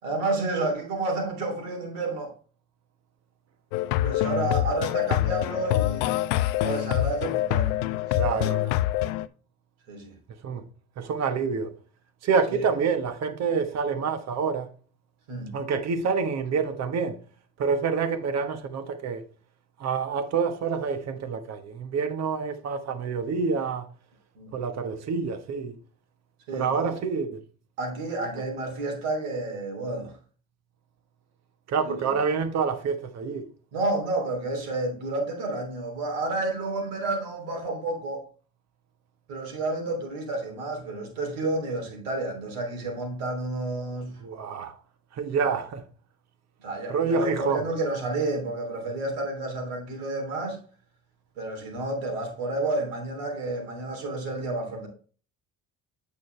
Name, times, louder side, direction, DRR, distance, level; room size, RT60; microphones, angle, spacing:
voice 1, 0.0-2.3 3.9-6.2 6.6-7.7 8.2-8.6 9.9-10.1 12.5-12.7 15.3-15.5 24.3-24.5 26.5-26.9 27.8-30.1 31.8-32.1 33.7-38.2 39.3-44.1 45.4-45.5 46.6-50.6 51.4-54.9, right 2 dB, 80° right, 3.1 m, -30 dB
sound 1, 3.7-9.3, left 15 dB, 80° left, 0.6 m, -25 dB
voice 2, 8.1-8.8 10.4-10.6 11.0-11.8 12.2-14.7 15.5-17.2 17.6-19.2 19.8-23.9 24.5-25.8 26.5-27.4 31.7-33.5 44.2-44.8 45.1-45.8 46.9-47.6, right 5 dB, 60° right, 1.3 m, -27 dB
8.8 x 5.3 x 3.2 m
supercardioid pair, 70°, 31 cm